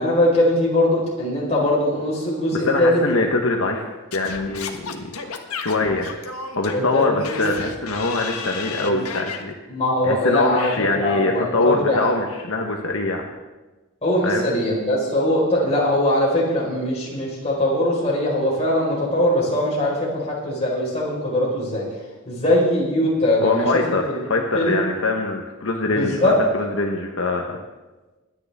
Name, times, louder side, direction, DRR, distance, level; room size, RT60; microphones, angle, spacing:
voice 1, 0.0-3.0 6.7-7.5 8.8-9.0 9.7-12.1 14.0-21.8 22.3-24.2 24.5-24.9 25.9-26.3, left 1 dB, 30° left, -4 dB, 4.5 m, -21 dB
voice 2, 2.6-5.1 5.6-6.1 6.6-9.5 10.0-13.3 14.2-14.5 23.4-27.6, left 3 dB, 65° left, 2 dB, 1.1 m, -23 dB
Singing / Scratching (performance technique), 4.1-9.4, left 5 dB, 90° left, 1.4 m, -33 dB
23.5 x 9.8 x 3.6 m, 1.2 s
head